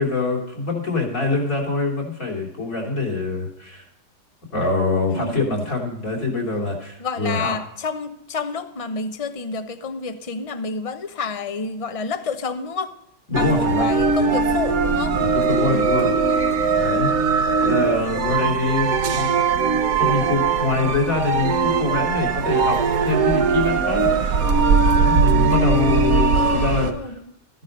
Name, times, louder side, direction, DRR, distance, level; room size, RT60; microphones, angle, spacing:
voice 1, 0.0-3.9 4.5-7.5 13.3-13.9 15.2-16.4 16.7-17.1 17.6-19.3 20.0-24.1 24.9-27.1, left 3 dB, 50° left, -1 dB, 3.6 m, -24 dB
voice 2, 5.1-5.5 7.0-12.9 13.3-15.1 15.5-15.9 26.3-27.2, left 4 dB, 30° left, 9 dB, 0.7 m, -29 dB
sound 1, 13.3-26.9, right 5 dB, 60° right, 1.3 m, -20 dB
14.0 x 11.0 x 5.2 m, 0.80 s
omnidirectional pair, 1.8 m